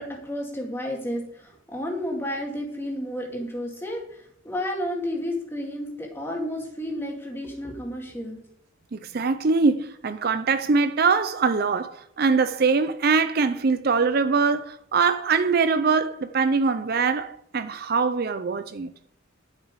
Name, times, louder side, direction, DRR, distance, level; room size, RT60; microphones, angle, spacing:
voice 1, 0.0-8.4, left 1 dB, 10° left, 2.3 m, -31 dB
voice 2, 8.9-18.9, right 4 dB, 45° right, 0.5 m, -23 dB
11.5 x 7.5 x 4.8 m
head